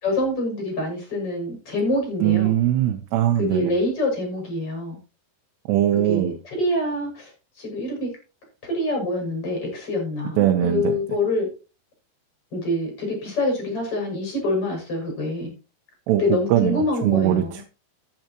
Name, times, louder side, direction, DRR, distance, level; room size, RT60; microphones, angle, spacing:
voice 1, 0.0-2.5 3.4-5.0 5.9-7.3 7.6-8.1 8.6-11.5 12.5-15.5 16.2-17.6, left 1 dB, 35° left, 2 dB, 7.3 m, -26 dB
voice 2, 2.2-3.7 5.7-6.3 10.4-11.0 16.1-17.6, right 12 dB, 85° right, 3 dB, 3.1 m, -21 dB
14.5 x 9.4 x 3.0 m, 0.32 s
omnidirectional pair, 4.7 m